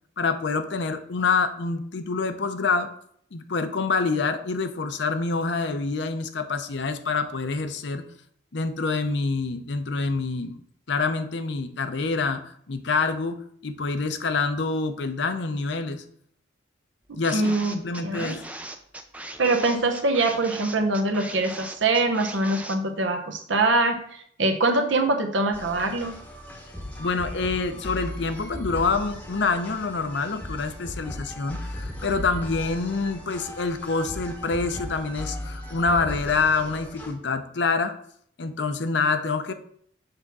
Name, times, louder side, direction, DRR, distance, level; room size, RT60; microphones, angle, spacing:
voice 1, 0.2-2.9 3.3-8.0 8.5-10.6 10.9-16.0 17.2-18.4 27.0-37.9 38.4-39.5, left 4 dB, 65° left, 9 dB, 0.6 m, -26 dB
sound 1, 17.2-22.8, right 1 dB, 5° right, 0.4 m, -39 dB
voice 2, 17.3-17.8 18.0-18.4 19.4-24.0 24.4-26.1, right 2 dB, 75° right, 5 dB, 1.0 m, -23 dB
sound 2, 25.5-37.1, left 1 dB, 10° left, 0.9 m, -37 dB
6.6 x 3.6 x 5.9 m, 0.65 s
head